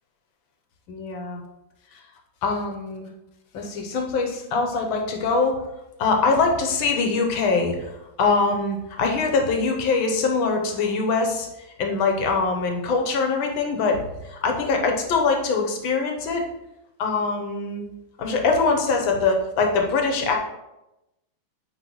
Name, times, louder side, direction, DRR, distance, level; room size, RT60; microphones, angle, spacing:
voice 1, 0.9-1.4 2.4-3.1 3.5-5.6 6.0-11.5 11.8-14.0 14.2-16.4 17.0-17.8 18.2-20.4, left 4 dB, 85° left, 3 dB, 1.7 m, -23 dB
9.4 x 3.9 x 3.1 m, 0.92 s
omnidirectional pair, 2.1 m